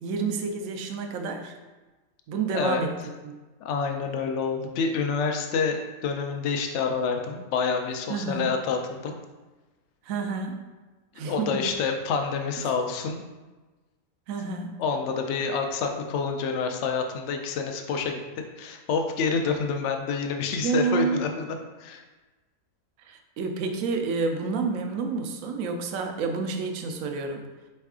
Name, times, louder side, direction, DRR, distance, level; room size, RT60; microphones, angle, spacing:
voice 1, 0.0-1.5 2.3-3.0 3.2-3.4 8.1-8.5 10.0-10.6 11.1-11.6 12.6-12.7 14.3-14.8 20.6-21.3 23.0-27.5, right 4 dB, 70° right, 5 dB, 0.9 m, -29 dB
voice 2, 2.5-2.8 3.6-9.1 11.3-13.2 14.8-18.2 18.6-22.0, left 5 dB, 65° left, 4 dB, 0.8 m, -28 dB
4.4 x 3.2 x 3.5 m, 1.2 s
omnidirectional pair, 1.5 m